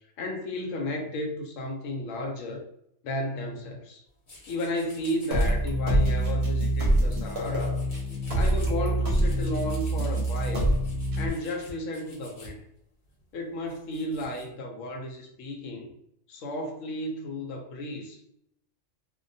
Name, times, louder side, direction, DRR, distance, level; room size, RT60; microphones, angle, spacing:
voice 1, 0.2-2.6 3.0-4.0 4.5-7.8 8.3-10.7 11.2-12.6 13.3-15.9 16.3-18.2, left 1 dB, 85° left, 2 dB, 1.0 m, -33 dB
sound 1, 4.3-5.5 5.9-12.5 13.1-14.5, equal, 45° left, 0.9 m, -48 dB
sound 2, 5.3-11.3, right 1 dB, 55° right, 0.7 m, -25 dB
2.2 x 2.1 x 2.6 m, 0.75 s
omnidirectional pair, 1.3 m